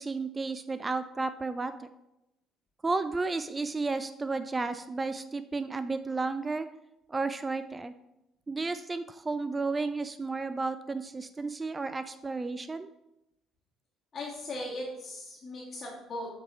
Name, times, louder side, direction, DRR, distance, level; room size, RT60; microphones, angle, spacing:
voice 1, 0.0-1.9 2.8-6.7 7.1-7.9 8.5-12.9, right 3 dB, 25° right, 12 dB, 0.3 m, -32 dB
voice 2, 14.1-16.3, left 1 dB, 40° left, -8 dB, 1.6 m, -38 dB
7.9 x 3.5 x 3.4 m, 0.90 s
figure-of-eight pair, 50°, 0 cm